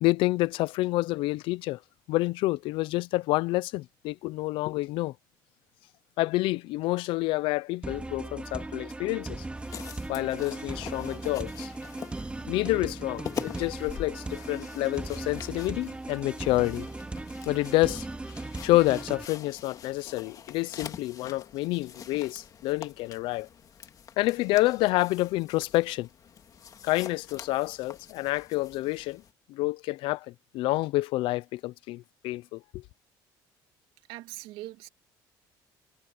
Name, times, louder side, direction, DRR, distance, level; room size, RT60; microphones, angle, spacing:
voice 1, 0.0-1.8 2.1-5.1 6.2-9.4 10.1-11.7 12.5-16.9 17.5-18.1 18.6-23.5 24.2-26.1 26.8-29.2 29.5-30.3 30.5-32.8, left 19 dB, 80° left, 0.6 m, -28 dB
sound 1, 7.8-19.3, right 2 dB, 15° right, 2.0 m, -38 dB
sound 2, 9.6-29.3, left 7 dB, 45° left, 2.0 m, -45 dB
voice 2, 34.1-34.9, right 17 dB, 85° right, 2.6 m, -41 dB
cardioid pair, 115°, 9 cm